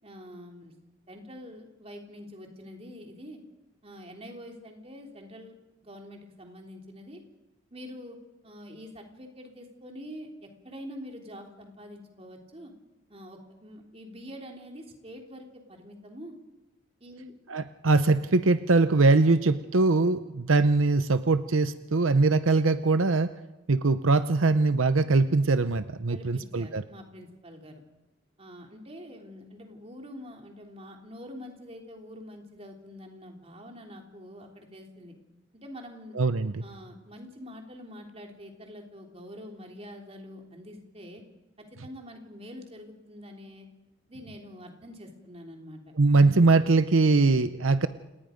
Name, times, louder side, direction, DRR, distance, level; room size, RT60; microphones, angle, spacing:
voice 1, 0.0-0.7 1.1-3.4 3.8-5.6 5.8-7.2 7.7-8.2 8.4-12.7 13.1-16.3 17.0-17.3 26.1-27.8 28.4-35.1 35.5-36.2 36.6-41.2 41.6-43.7 44.1-45.8, equal, 30° right, 2 dB, 3.4 m, -45 dB
voice 2, 17.5-23.3 23.7-26.8 36.2-36.6 46.0-47.9, right 3 dB, 80° right, 11 dB, 0.8 m, -22 dB
29.5 x 19.0 x 5.2 m, 1.1 s
head